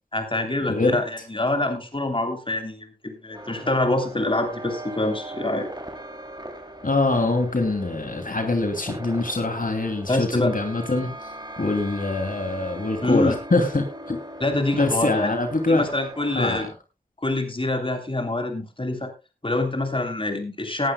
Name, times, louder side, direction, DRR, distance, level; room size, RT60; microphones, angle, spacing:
voice 1, 0.1-5.7 10.1-10.5 13.0-13.4 14.4-15.3 15.7-16.7 17.2-19.1 19.4-20.9, left 2 dB, 30° left, 6 dB, 3.1 m, -25 dB
voice 2, 0.7-1.0 6.8-11.1 11.6-14.2 14.7-15.9 16.3-16.7, left 2 dB, 55° left, 5 dB, 2.8 m, -24 dB
sound 1, 3.3-16.6, right 1 dB, 25° right, 2.9 m, -40 dB
18.5 x 11.5 x 2.3 m, 0.27 s
cardioid pair, 40°, 17 cm